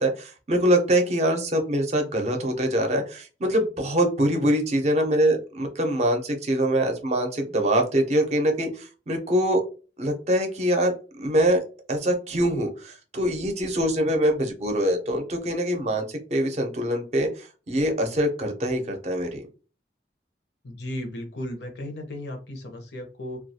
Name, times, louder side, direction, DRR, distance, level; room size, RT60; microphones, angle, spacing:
voice 1, 0.0-9.6 10.0-10.9 11.2-11.6 11.9-19.4, right 1 dB, 40° right, 3 dB, 0.5 m, -24 dB
voice 2, 20.6-23.4, left 1 dB, 75° left, 4 dB, 0.7 m, -35 dB
2.3 x 2.2 x 2.7 m, 0.35 s
head